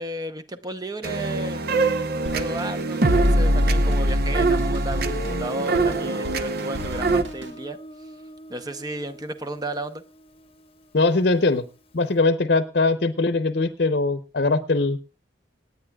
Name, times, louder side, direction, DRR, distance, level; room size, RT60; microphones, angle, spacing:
voice 1, 0.0-1.7 2.3-7.8 8.5-10.0, right 1 dB, 20° right, 0.8 m, -33 dB
sound 1, 1.0-7.2, right 2 dB, 55° right, 0.8 m, -22 dB
Drum kit, 2.3-7.6, equal, 75° right, 2.1 m, -37 dB
Guitar, 5.0-11.7, left 1 dB, 30° left, 0.9 m, -41 dB
voice 2, 10.9-11.6 11.9-15.0, left 3 dB, 55° left, 0.8 m, -21 dB
26.5 x 9.5 x 2.3 m
head